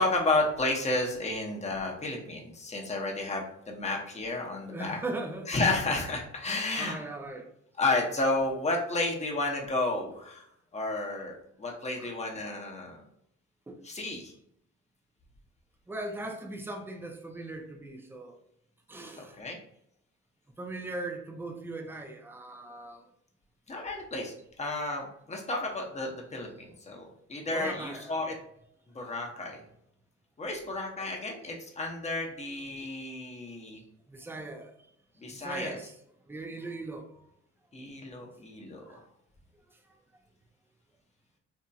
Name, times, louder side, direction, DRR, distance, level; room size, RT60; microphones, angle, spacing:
voice 1, 0.0-5.0 5.5-7.0 7.8-10.5 10.7-13.0 13.8-14.3 19.2-19.6 23.7-28.3 28.9-29.6 30.4-33.8 35.2-35.8 37.7-39.0, left 2 dB, 20° left, 0 dB, 0.7 m, -32 dB
voice 2, 4.7-5.5 6.7-7.5 12.0-12.1 13.7-13.8 15.9-18.3 18.9-19.3 20.6-23.0 27.5-28.1 32.5-32.6 34.1-34.7 35.3-35.9 36.3-37.0 38.9-39.0, right 2 dB, 5° right, 4 dB, 0.4 m, -39 dB
2.8 x 2.7 x 2.3 m, 0.73 s
cardioid pair, 90°, 30 cm